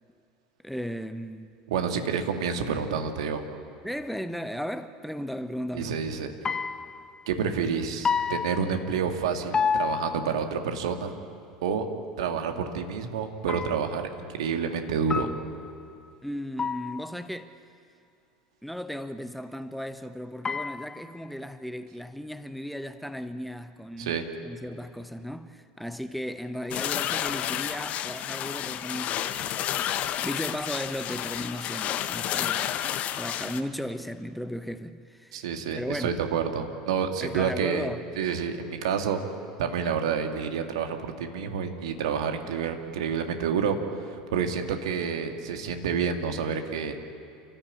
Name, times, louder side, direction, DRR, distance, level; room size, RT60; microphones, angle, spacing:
voice 1, 0.6-1.6 3.8-6.0 16.2-17.5 18.6-24.2 24.4-29.7 30.2-32.8 33.1-35.5 35.7-36.2 37.2-38.0, equal, ahead, 0.9 m, -36 dB
voice 2, 1.7-3.5 5.7-6.3 7.3-11.2 11.6-11.9 12.2-15.4 24.0-24.3 35.3-37.9 38.2-39.2 39.6-47.0, right 6 dB, 70° right, 2.2 m, -29 dB
sound 1, 6.4-7.3 8.0-9.2 9.5-10.6 13.5-14.1 15.1-15.8 16.6-17.3 20.4-21.3, left 6 dB, 20° left, 0.6 m, -30 dB
sound 2, 26.7-33.6, left 11 dB, 45° left, 1.1 m, -31 dB
30.0 x 14.0 x 8.6 m
figure-of-eight pair, 75°, 3 cm